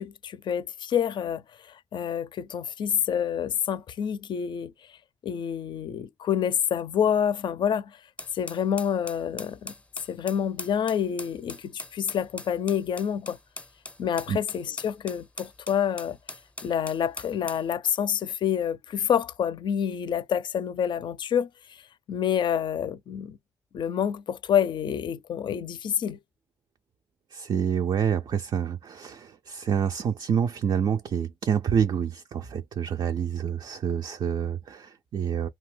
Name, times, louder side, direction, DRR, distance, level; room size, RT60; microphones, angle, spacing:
voice 1, 0.0-4.7 5.2-8.0 8.3-9.7 10.1-13.4 14.0-16.2 16.6-21.8 22.1-23.4 23.7-26.2, left 8 dB, 60° left, 0.4 m, -28 dB
sound 1, 8.2-17.7, left 2 dB, 15° left, 0.5 m, -41 dB
voice 2, 27.3-35.5, right 8 dB, 60° right, 0.3 m, -27 dB
2.6 x 2.3 x 3.2 m
hypercardioid pair, 40°, 9 cm